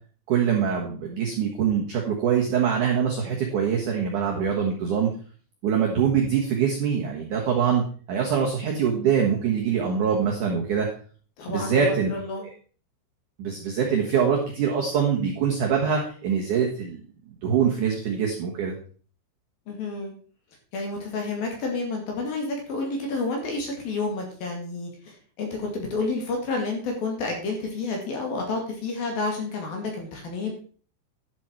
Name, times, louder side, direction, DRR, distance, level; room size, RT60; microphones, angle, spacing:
voice 1, 0.3-5.1 5.6-7.8 8.1-10.9 11.5-12.1 12.4-12.5 13.4-17.0 17.4-18.7, right 7 dB, 80° right, 0 dB, 1.8 m, -24 dB
voice 2, 11.4-11.8 12.1-12.4 19.7-20.1 20.7-30.6, left 3 dB, 55° left, 1 dB, 3.5 m, -30 dB
11.0 x 7.5 x 4.5 m, 0.42 s
omnidirectional pair, 5.8 m